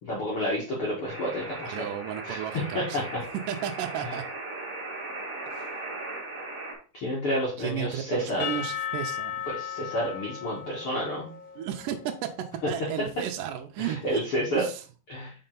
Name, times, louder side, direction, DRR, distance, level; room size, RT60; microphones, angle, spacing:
voice 1, 0.0-1.9 2.3-3.0 4.0-4.1 6.9-8.4 9.5-11.3 13.8-14.6 15.1-15.3, equal, 50° left, 1.7 m, -30 dB
sound 1, 1.1-6.7, right 2 dB, 45° right, 1.0 m, -38 dB
voice 2, 1.7-3.1 3.5-4.2 5.5-5.6 7.6-9.4 11.6-12.3 12.7-14.2 14.5-14.8, right 10 dB, 80° right, 2.0 m, -33 dB
Percussion / Church bell, 8.4-12.4, left 9 dB, 90° left, 1.5 m, -36 dB
5.4 x 4.7 x 3.9 m
omnidirectional pair, 4.5 m